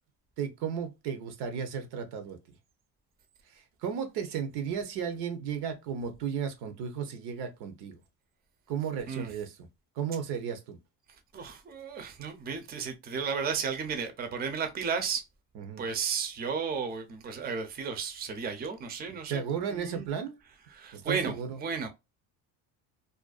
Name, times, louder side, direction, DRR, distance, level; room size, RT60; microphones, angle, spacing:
voice 1, 0.4-2.4 3.5-8.0 8.7-9.7 10.0-10.8 15.6-15.8 19.1-20.4 20.9-21.6, right 7 dB, 75° right, 0.7 m, -34 dB
voice 2, 11.3-15.2 15.8-19.4 19.7-20.1 20.7-21.9, right 6 dB, 25° right, 0.5 m, -33 dB
2.5 x 2.2 x 2.3 m
supercardioid pair, 95°, 40 cm